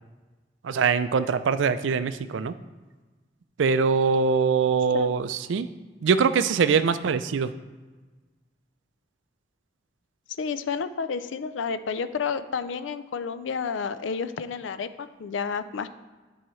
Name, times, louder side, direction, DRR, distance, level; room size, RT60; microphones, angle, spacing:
voice 1, 0.6-2.5 3.6-5.7 6.0-7.5, right 5 dB, 85° right, 13 dB, 0.4 m, -23 dB
voice 2, 10.4-15.9, left 5 dB, 85° left, 13 dB, 0.4 m, -30 dB
10.0 x 4.7 x 3.1 m, 1.3 s
head